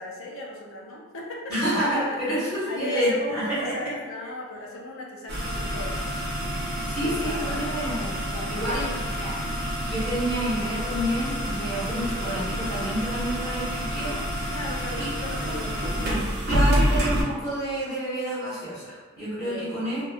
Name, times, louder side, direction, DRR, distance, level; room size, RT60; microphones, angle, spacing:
voice 1, 0.0-1.6 1.9-2.4 2.7-6.2 6.7-9.0 9.3-9.5 14.5-16.4 19.3-19.7, left 1 dB, 75° left, -2 dB, 0.5 m, -37 dB
voice 2, 1.5-3.9 6.8-8.0 8.5-9.3 9.8-14.3 15.0-15.1 15.4-15.6 16.5-20.0, right 1 dB, 20° left, -13 dB, 1.3 m, -29 dB
sound 1, 5.3-17.2, equal, 50° right, 0.8 m, -28 dB
3.0 x 2.5 x 2.4 m, 1.4 s
head